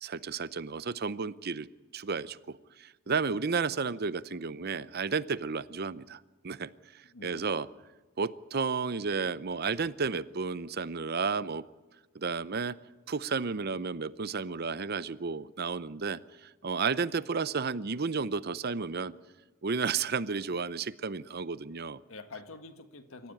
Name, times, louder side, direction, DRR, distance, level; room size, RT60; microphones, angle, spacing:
voice 1, 0.0-1.7 1.9-7.7 8.2-11.6 12.1-12.8 13.1-19.1 19.6-22.0, right 5 dB, 50° right, 16 dB, 0.7 m, -32 dB
voice 2, 3.0-3.4 7.1-7.8 22.1-23.3, left 3 dB, 75° left, 8 dB, 1.7 m, -48 dB
25.5 x 14.5 x 9.2 m, 1.2 s
head